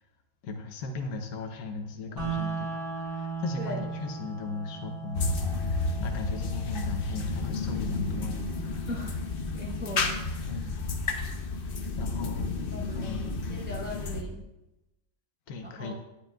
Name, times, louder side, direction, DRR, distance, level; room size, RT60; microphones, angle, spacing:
voice 1, 0.4-8.9 10.5-10.8 12.0-13.4 15.5-15.9, left 4 dB, 80° left, 4 dB, 1.3 m, -37 dB
sound 1, 2.2-12.2, right 5 dB, 25° right, 2.6 m, -39 dB
sound 2, 5.1-14.2, left 3 dB, 45° left, 0.8 m, -31 dB
voice 2, 9.5-10.7 12.7-14.4 15.6-15.9, left 1 dB, 10° right, -3 dB, 0.8 m, -40 dB
11.5 x 10.5 x 2.3 m, 0.97 s
omnidirectional pair, 1.5 m